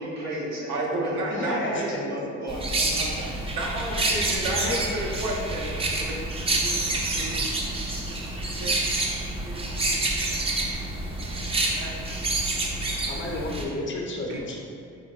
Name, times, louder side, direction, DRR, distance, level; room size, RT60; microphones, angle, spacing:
voice 1, 0.0-3.3, right 1 dB, 65° right, -5 dB, 1.0 m, -33 dB
voice 2, 0.7-2.0 3.5-6.1 6.6-7.4 8.6-9.1 9.4-10.0 11.8-11.9 14.3-14.6, right 1 dB, 85° right, -2 dB, 0.5 m, -32 dB
voice 3, 1.2-1.8 3.9-4.0 4.5-4.8 13.1-14.6, left 2 dB, 40° left, -1 dB, 0.5 m, -32 dB
sound 1, 2.5-13.6, right 2 dB, 20° right, 0.3 m, -28 dB
3.8 x 2.0 x 2.3 m, 2.4 s
cardioid pair, 90°, 30 cm